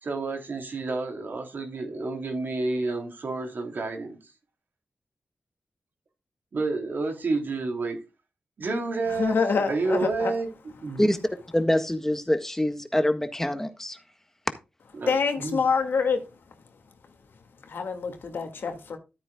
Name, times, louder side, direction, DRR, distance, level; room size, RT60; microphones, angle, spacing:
voice 1, 0.0-4.2 6.5-8.0 8.6-9.4 9.6-10.5 10.8-11.1 15.0-15.6, right 3 dB, 65° right, 3.2 m, -29 dB
voice 2, 9.1-10.3 15.1-16.2 17.6-19.0, left 5 dB, 85° left, 2.1 m, -26 dB
voice 3, 11.0-14.0, left 1 dB, 10° left, 1.6 m, -25 dB
13.0 x 8.9 x 2.3 m
wide cardioid pair, 75°, 4 cm